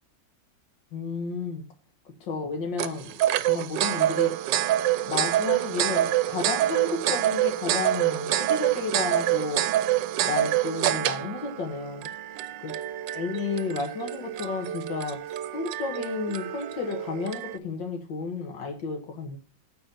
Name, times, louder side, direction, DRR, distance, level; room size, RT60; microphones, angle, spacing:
voice 1, 0.9-1.7 2.3-3.1 3.5-4.4 5.1-9.6 10.2-12.1 12.6-12.7 13.1-15.2 15.5-19.4, left 4 dB, 70° left, 3 dB, 2.3 m, -32 dB
sound 1, 2.8-17.6, right 13 dB, 75° right, 1.2 m, -27 dB
9.1 x 4.3 x 6.9 m, 0.35 s
omnidirectional pair, 2.1 m